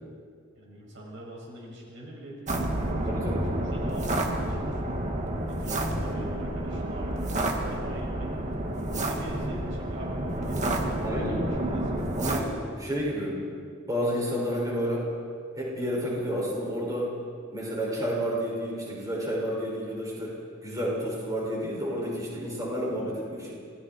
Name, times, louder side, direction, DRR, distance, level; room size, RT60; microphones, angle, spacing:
voice 1, 0.5-4.9 5.5-12.1 22.2-22.4, right 1 dB, 65° right, -3 dB, 6.3 m, -44 dB
sound 1, 2.5-12.4, right 1 dB, 40° right, 2.1 m, -29 dB
voice 2, 3.1-3.5 11.0-11.4 12.2-13.4 13.9-15.1 15.6-17.1 17.5-23.5, equal, 20° right, -5 dB, 6.5 m, -30 dB
28.5 x 20.0 x 4.7 m, 2.2 s
head